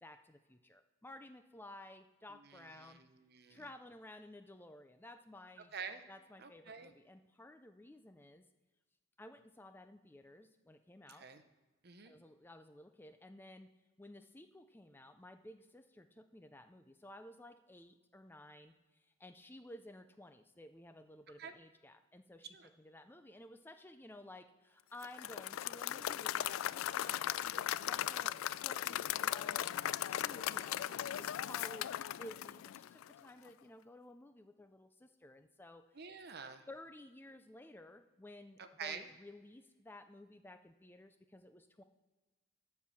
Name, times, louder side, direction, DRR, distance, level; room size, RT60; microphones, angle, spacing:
voice 1, 0.0-3.0 3.5-5.7 6.1-8.4 9.2-11.3 12.0-13.7 14.0-35.8 36.7-41.8, left 1 dB, 10° left, 8 dB, 0.4 m, -55 dB
voice 2, 2.5-3.6 5.7-6.0 6.4-6.9 11.2-11.4 11.8-12.1 21.4-21.5 22.5-22.7 36.0-36.7 38.6-39.1, right 6 dB, 50° right, 8 dB, 0.8 m, -47 dB
Applause / Crowd, 25.0-33.2, left 11 dB, 80° left, 0.3 m, -38 dB
12.5 x 4.6 x 7.0 m, 1.2 s
head